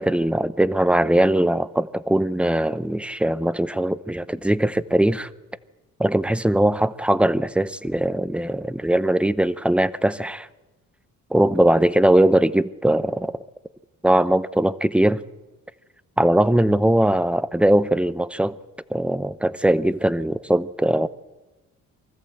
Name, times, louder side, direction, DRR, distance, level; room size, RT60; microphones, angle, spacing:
voice 1, 0.0-5.3 6.0-10.5 11.3-13.3 14.0-15.2 16.2-18.6 18.9-21.1, right 1 dB, 5° right, 15 dB, 0.7 m, -20 dB
23.5 x 14.0 x 7.8 m, 1.1 s
cardioid pair, 85°, 33 cm